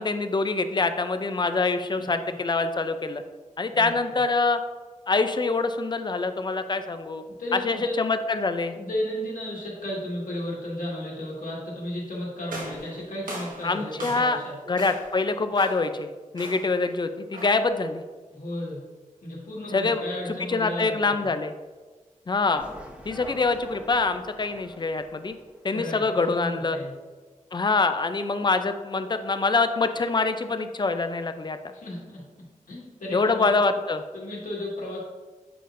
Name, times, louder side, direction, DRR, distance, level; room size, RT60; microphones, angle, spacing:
voice 1, 0.0-3.2 3.6-4.6 5.1-7.2 7.5-8.7 13.6-14.4 14.7-18.0 19.7-20.0 20.5-21.5 22.3-22.6 23.1-25.3 25.6-26.8 27.5-31.6 33.1-34.0, left 3 dB, 35° left, 9 dB, 0.4 m, -25 dB
voice 2, 2.0-2.4 3.7-4.2 7.4-8.0 8.7-14.5 18.3-18.8 19.2-21.3 25.7-26.0 26.3-26.9 31.7-32.2 32.7-33.6 34.1-35.0, left 1 dB, 75° left, -4 dB, 1.9 m, -34 dB
sound 1, 12.5-14.5 14.8-15.2 15.5-15.9 16.4-16.8 17.3-17.7, right 1 dB, 85° right, 1.4 m, -39 dB
sound 2, 22.6-26.4 26.7-26.8, equal, 10° right, 1.0 m, -46 dB
7.7 x 5.0 x 2.6 m, 1.3 s
wide cardioid pair, 100°, 14 cm